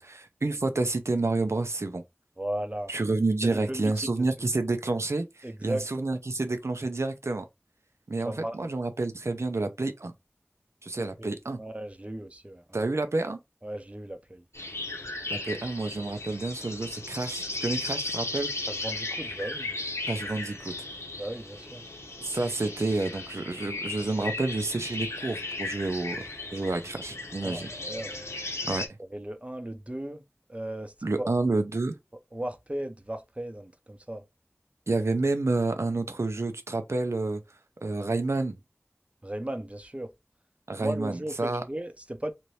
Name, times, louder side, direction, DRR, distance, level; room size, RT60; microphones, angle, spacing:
voice 1, 0.0-2.0 2.9-7.5 8.1-10.1 10.8-11.6 12.7-13.4 15.3-18.5 20.1-20.7 22.2-26.2 26.5-27.7 28.6-28.8 31.0-31.9 34.9-37.4 37.8-38.6 40.7-41.6, right 2 dB, 85° right, 0.5 m, -29 dB
voice 2, 2.4-2.9 3.4-4.3 5.4-5.9 8.2-8.7 11.0-11.3 11.6-12.8 13.6-14.4 18.7-19.7 21.2-21.8 27.4-28.3 29.1-30.2 30.5-31.3 32.3-34.2 39.2-40.1 40.8-42.3, right 1 dB, 30° right, 0.5 m, -36 dB
sound 1, 14.5-28.9, left 2 dB, 85° left, 0.8 m, -36 dB
2.8 x 2.6 x 3.1 m
wide cardioid pair, 40°, 5 cm